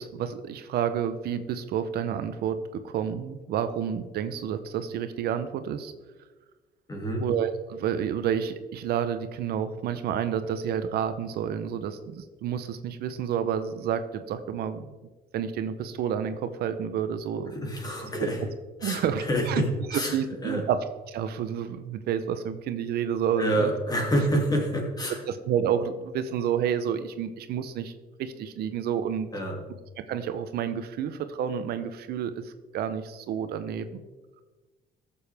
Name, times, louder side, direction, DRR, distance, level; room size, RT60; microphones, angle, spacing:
voice 1, 0.0-5.9 7.2-15.0 15.3-17.5 18.2-18.3 18.8-19.6 19.9-20.8 21.1-23.7 25.3-27.9 28.2-29.3 30.1-34.0, right 8 dB, 70° right, 10 dB, 0.7 m, -30 dB
voice 2, 6.9-7.2 17.5-18.4 18.8-20.1 20.4-20.6 23.4-25.2 29.3-29.6, equal, 20° left, 0 dB, 2.5 m, -27 dB
14.5 x 7.0 x 3.5 m, 1.3 s
cardioid pair, 110°, 17 cm